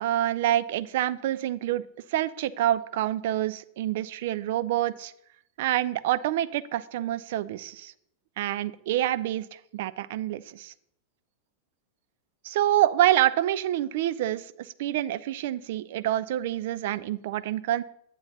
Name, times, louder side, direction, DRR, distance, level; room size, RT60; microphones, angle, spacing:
voice 1, 0.0-1.8 2.1-5.1 5.6-7.9 8.4-10.7 12.4-17.8, right 13 dB, 55° right, 17 dB, 0.3 m, -27 dB
9.5 x 8.0 x 2.8 m, 0.72 s
figure-of-eight pair, 90°, 0 cm